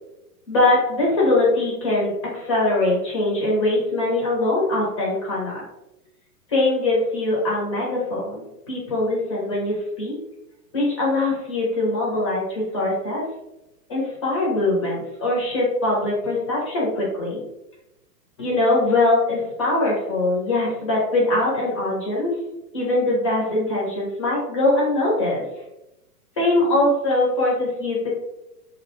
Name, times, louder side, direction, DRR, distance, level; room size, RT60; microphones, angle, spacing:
voice 1, 0.5-5.6 6.5-10.1 10.7-13.2 13.9-17.4 18.4-22.3 22.7-25.4 26.4-28.1, left 2 dB, 25° left, -4 dB, 0.3 m, -22 dB
2.3 x 2.1 x 2.8 m, 0.92 s
hypercardioid pair, 140°, 47 cm